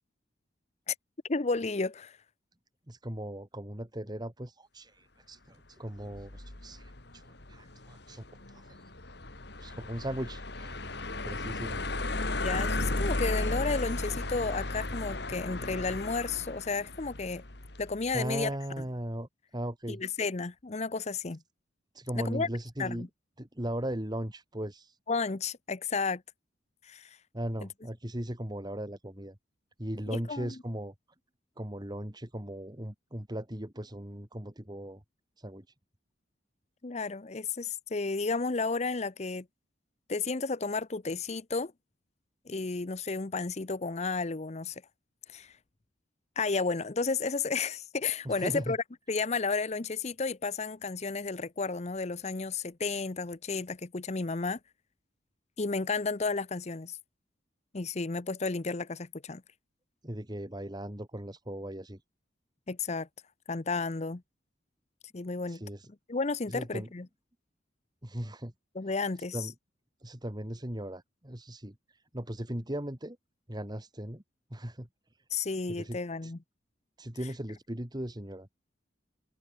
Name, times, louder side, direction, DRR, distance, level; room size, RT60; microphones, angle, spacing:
voice 1, 1.3-2.2 12.4-17.4 17.8-18.8 19.9-21.4 22.1-22.5 22.8-23.1 25.1-26.2 26.8-27.2 30.1-30.6 36.8-39.5 40.1-41.7 42.5-44.8 45.3-45.5 46.4-48.8 49.1-54.6 55.6-57.0 57.7-59.4 62.7-63.1 63.5-64.2 65.1-65.6 66.1-67.1 68.7-69.5 75.3-76.4, left 4 dB, 35° left, 0.8 m, -32 dB
voice 2, 2.9-7.2 7.5-8.8 9.6-10.8 11.2-11.8 18.1-20.0 21.9-23.1 23.4-25.0 27.3-29.4 29.8-30.9 31.6-35.0 35.4-35.7 48.2-48.8 60.0-62.0 65.5-65.9 66.5-66.9 68.0-68.5 69.3-69.5 70.0-73.2 73.5-74.2 74.5-74.9 75.7-76.3 77.0-78.5, right 1 dB, 20° right, 2.2 m, -38 dB
sound 1, 6.0-18.2, left 2 dB, 60° left, 2.8 m, -35 dB
head